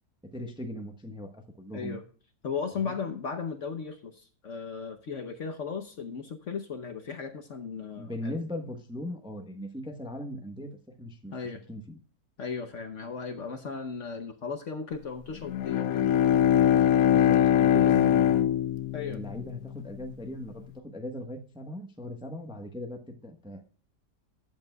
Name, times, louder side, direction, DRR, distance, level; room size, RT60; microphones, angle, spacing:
voice 1, 0.2-2.0 2.8-2.9 8.0-11.3 11.7-12.0 17.0-18.4 19.0-23.6, left 1 dB, 5° right, 5 dB, 0.9 m, -39 dB
voice 2, 1.7-2.0 2.4-8.4 11.3-11.6 12.4-16.0 17.8-17.9 18.9-19.2, left 5 dB, 55° left, 6 dB, 1.1 m, -36 dB
Bowed string instrument, 15.4-20.0, left 10 dB, 70° left, 1.0 m, -23 dB
14.5 x 8.9 x 2.3 m, 0.41 s
omnidirectional pair, 1.8 m